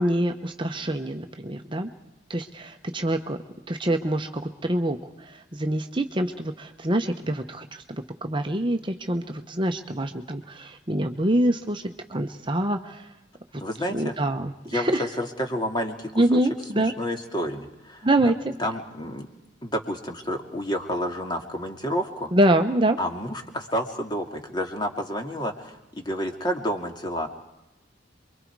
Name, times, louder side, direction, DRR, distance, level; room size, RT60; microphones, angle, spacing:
voice 1, 0.0-1.9 2.3-3.4 3.7-5.0 5.3-7.8 8.2-13.1 13.9-15.1 16.2-16.9 18.0-18.5 22.3-23.0, right 1 dB, 25° right, 6 dB, 1.0 m, -25 dB
voice 2, 13.6-14.1 14.7-16.4 16.7-18.1 18.6-19.3 19.6-22.3 23.0-27.3, equal, 25° left, 4 dB, 2.4 m, -30 dB
28.0 x 23.5 x 4.8 m, 0.93 s
head